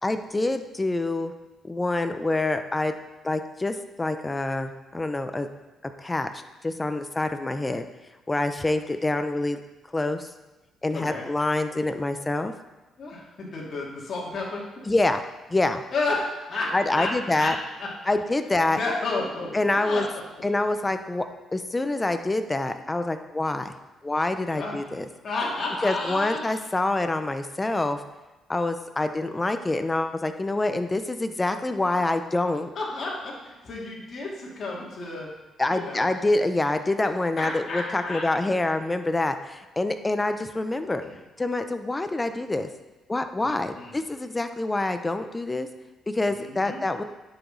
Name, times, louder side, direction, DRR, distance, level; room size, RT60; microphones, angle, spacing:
voice 1, 0.0-1.3 1.6-2.9 3.2-5.5 5.8-7.8 8.3-9.6 9.9-10.3 10.8-12.5 14.9-15.2 15.5-15.8 16.7-17.6 18.1-18.8 19.5-20.0 20.4-21.3 21.5-23.7 24.0-25.0 25.8-28.0 28.5-32.7 35.6-41.0 41.4-42.7 43.1-45.7 46.1-47.0, left 2 dB, 20° left, 9 dB, 0.7 m, -26 dB
voice 2, 10.9-11.3 13.0-14.6 15.9-17.1 17.4-17.5 17.8-17.9 18.7-20.4 24.5-24.7 25.2-26.4 32.7-35.3 35.7-36.1 37.0-38.3 41.0-41.2 43.4-44.0 46.3-46.8, left 3 dB, 50° left, -4 dB, 2.4 m, -32 dB
9.9 x 6.1 x 4.0 m, 1.1 s
cardioid pair, 90°, 0 cm